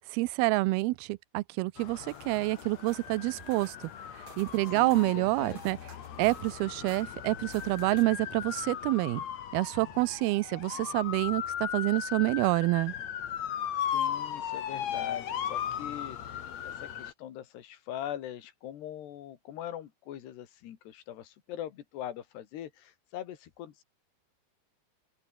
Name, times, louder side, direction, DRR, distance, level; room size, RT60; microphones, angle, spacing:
voice 1, 0.1-3.9 4.4-5.8 6.2-9.2 9.5-12.9, right 21 dB, 80° right, 2.5 m, -28 dB
sound 1, 1.8-17.1, left 9 dB, 50° left, 2.3 m, -37 dB
sound 2, 1.8-8.2, right 3 dB, 30° right, 5.2 m, -54 dB
voice 2, 4.7-5.6 13.9-23.8, left 11 dB, 85° left, 4.1 m, -42 dB
open air
omnidirectional pair, 4.7 m